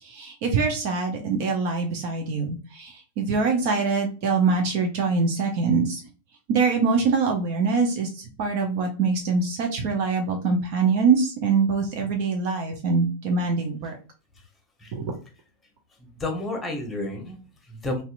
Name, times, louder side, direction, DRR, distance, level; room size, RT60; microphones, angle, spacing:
voice 1, 0.0-6.0 6.5-14.0 14.9-15.1, right 4 dB, 45° right, 3 dB, 0.6 m, -24 dB
voice 2, 16.0-18.0, left 2 dB, 15° left, 4 dB, 1.0 m, -31 dB
4.1 x 2.4 x 2.5 m, 0.35 s
figure-of-eight pair, 90°, 0 cm